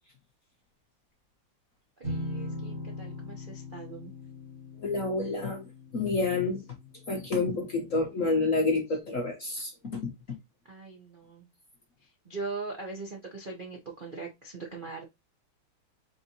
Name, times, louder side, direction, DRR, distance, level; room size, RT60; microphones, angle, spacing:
sound 1, 2.0-7.6, left 1 dB, 35° right, 2.5 m, -40 dB
voice 1, 2.0-4.1 10.7-11.5 12.2-15.0, right 3 dB, 65° right, 0.5 m, -40 dB
voice 2, 4.8-5.7 5.9-6.6 7.1-10.1, left 3 dB, 55° left, 0.9 m, -28 dB
4.4 x 4.0 x 2.8 m
omnidirectional pair, 2.4 m